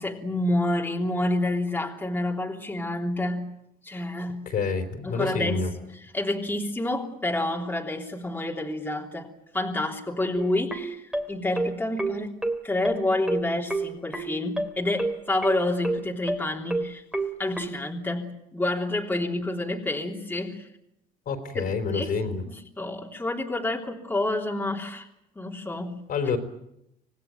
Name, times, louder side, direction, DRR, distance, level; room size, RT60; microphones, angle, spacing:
voice 1, 0.0-3.6 3.8-4.5 5.0-5.6 6.1-12.3 12.6-17.0 17.4-20.7 21.5-22.1 22.4-25.1 25.3-26.0, left 2 dB, 10° left, -1 dB, 3.4 m, -28 dB
voice 2, 4.5-5.7 21.3-22.4 26.1-26.4, left 5 dB, 55° left, 6 dB, 4.3 m, -27 dB
sound 1, 10.4-17.7, right 2 dB, 5° right, 2.9 m, -29 dB
26.5 x 18.5 x 9.2 m, 0.82 s
cardioid pair, 110°, 17 cm